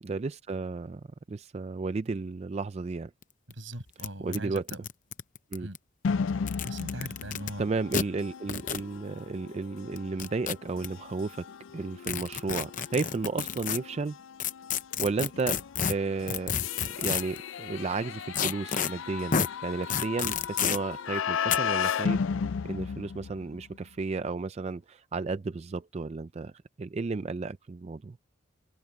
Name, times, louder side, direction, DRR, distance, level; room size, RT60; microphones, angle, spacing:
voice 1, 0.0-3.1 4.2-4.6 5.5-5.7 7.6-11.5 11.7-14.2 15.0-15.6 15.9-22.2 22.6-26.5 26.8-28.2, right 3 dB, 35° right, 0.4 m, -33 dB
sound 1, 3.2-3.3 3.5-3.6 4.0-4.1 4.3-5.8 6.4-7.5 7.9-8.0 8.5-8.8 10.0-10.9 12.0-13.8 14.4-17.4 18.3-18.9 19.3-19.5 19.9-20.8 21.5-21.6, left 7 dB, 40° left, 0.7 m, -30 dB
voice 2, 3.5-4.8 5.6-5.8 6.6-7.7, right 1 dB, 70° right, 6.2 m, -40 dB
sound 2, 6.0-23.8, left 6 dB, 70° left, 0.4 m, -35 dB
head